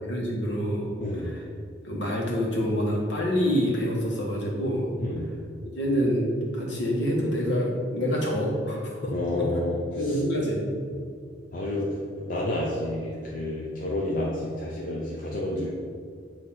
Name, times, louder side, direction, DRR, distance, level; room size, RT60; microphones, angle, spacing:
voice 1, 0.0-1.4 1.8-4.9 5.8-6.3 6.5-9.5 9.9-10.7, equal, 70° left, -3 dB, 1.6 m, -27 dB
voice 2, 5.0-5.3 9.1-9.7 11.5-11.9 12.3-15.7, left 1 dB, 45° left, -5 dB, 0.8 m, -29 dB
8.3 x 3.1 x 5.7 m, 2.1 s
head